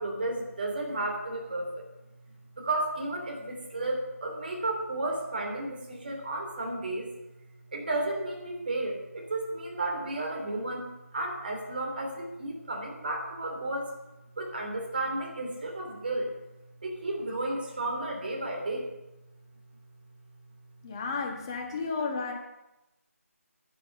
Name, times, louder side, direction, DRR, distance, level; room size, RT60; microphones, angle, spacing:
voice 1, 0.0-1.8 2.6-7.1 7.7-13.9 14.4-16.3 16.8-18.9, right 2 dB, 35° right, 1 dB, 3.1 m, -33 dB
voice 2, 20.8-22.3, left 4 dB, 20° left, 1 dB, 1.5 m, -32 dB
10.0 x 10.0 x 7.0 m, 0.97 s
figure-of-eight pair, 160°, 8 cm